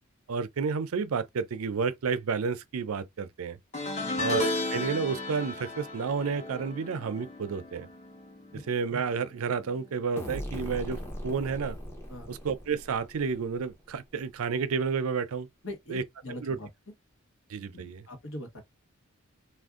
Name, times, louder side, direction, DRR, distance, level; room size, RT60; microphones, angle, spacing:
voice 1, 0.3-3.6 4.2-7.9 8.7-11.8 12.3-15.5 15.9-16.0 16.4-16.6 17.5-18.0, right 5 dB, 75° right, 0.5 m, -31 dB
sound 1, 3.7-9.1 9.4-9.8 11.0-11.1, left 2 dB, 30° left, 1.0 m, -34 dB
sound 2, 10.2-13.8, equal, 10° left, 0.7 m, -40 dB
voice 2, 15.6-16.7 17.7-18.6, left 1 dB, 65° left, 1.1 m, -42 dB
2.5 x 2.1 x 3.5 m
head